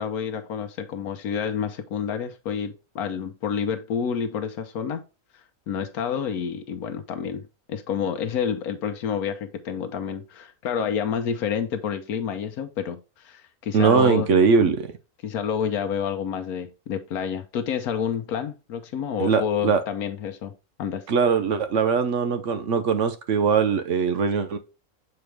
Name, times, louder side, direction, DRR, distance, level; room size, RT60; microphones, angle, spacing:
voice 1, 0.0-5.0 5.3-14.3 14.6-14.8 15.2-20.5 20.8-21.0, left 7 dB, 85° left, 1.2 m, -29 dB
voice 2, 13.7-14.9 19.2-19.8 21.1-24.6, right 5 dB, 60° right, 1.0 m, -21 dB
6.9 x 4.3 x 3.3 m
omnidirectional pair, 1.5 m